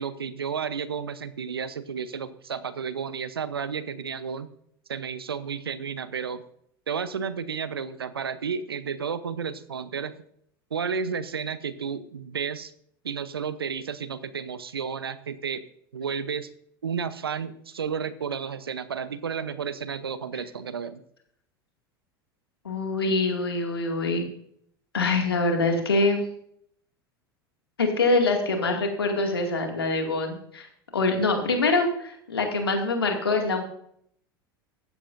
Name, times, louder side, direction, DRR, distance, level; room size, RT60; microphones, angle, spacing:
voice 1, 0.0-4.5 4.9-6.4 6.9-10.2 10.7-12.7 13.0-15.6 15.9-16.5 16.8-21.0, right 6 dB, 90° right, 14 dB, 0.8 m, -32 dB
voice 2, 22.6-24.3 24.9-26.2 27.8-30.7 30.9-33.6, left 3 dB, 90° left, 3 dB, 2.3 m, -24 dB
15.5 x 12.5 x 2.6 m, 0.68 s
hypercardioid pair, 85°, 12 cm